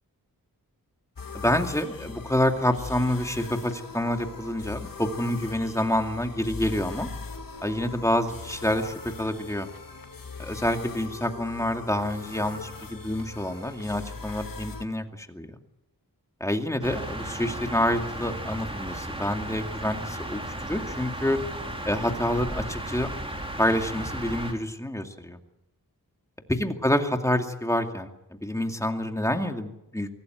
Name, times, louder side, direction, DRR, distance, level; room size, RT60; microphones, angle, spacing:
sound 1, 1.2-14.8, left 4 dB, 65° left, 2.3 m, -40 dB
voice 1, 1.3-7.1 7.6-9.7 10.4-15.5 16.4-21.4 21.8-23.1 23.6-25.4 26.5-28.1 28.4-30.1, left 1 dB, 10° left, 5 dB, 2.5 m, -27 dB
sound 2, 16.8-24.5, right 1 dB, 15° right, 4.0 m, -35 dB
24.5 x 17.5 x 9.4 m, 0.89 s
wide cardioid pair, 100°, 36 cm